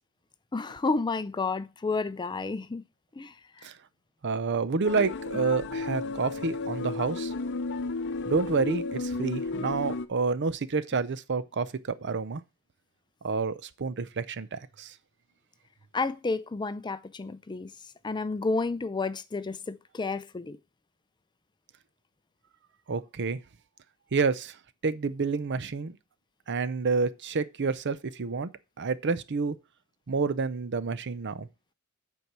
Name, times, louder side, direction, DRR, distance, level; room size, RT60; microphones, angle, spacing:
voice 1, 0.5-2.8 3.2-3.7 15.9-17.7 18.0-20.6, left 3 dB, 20° left, 0.4 m, -31 dB
voice 2, 4.2-7.3 8.3-12.4 13.2-14.9 22.9-23.4 24.1-24.6 24.8-26.0 26.5-28.5 28.8-29.6 30.1-31.5, right 4 dB, 55° right, 0.6 m, -29 dB
sound 1, 4.8-10.1, left 3 dB, 55° left, 0.7 m, -33 dB
8.4 x 4.6 x 5.9 m
head